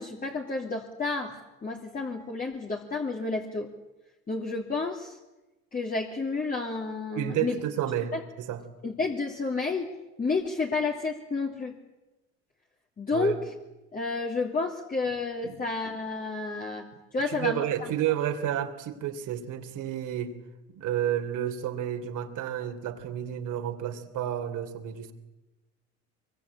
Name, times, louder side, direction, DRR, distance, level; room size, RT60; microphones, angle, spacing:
voice 1, 0.0-3.7 4.3-5.2 5.7-7.6 8.1-8.2 8.8-9.9 10.2-11.7 13.0-13.5 13.9-17.7, left 3 dB, 25° left, 0 dB, 3.0 m, -30 dB
voice 2, 7.1-8.6 13.1-13.4 15.5-15.6 17.3-20.3 20.7-25.1, right 10 dB, 65° right, 6 dB, 3.3 m, -31 dB
23.5 x 22.5 x 8.6 m, 1.0 s
supercardioid pair, 85°, 33 cm